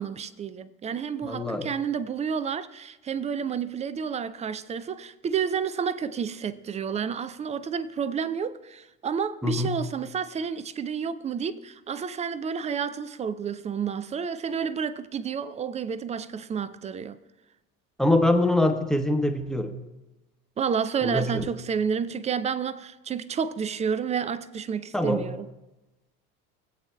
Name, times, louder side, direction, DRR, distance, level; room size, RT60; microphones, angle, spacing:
voice 1, 0.0-17.2 20.6-25.5, right 7 dB, 20° right, 0.3 m, -30 dB
voice 2, 1.2-1.7 9.4-9.8 18.0-19.7 21.0-21.4 24.9-25.3, left 1 dB, ahead, 0.9 m, -24 dB
21.5 x 8.2 x 2.3 m
hypercardioid pair, 70°, 41 cm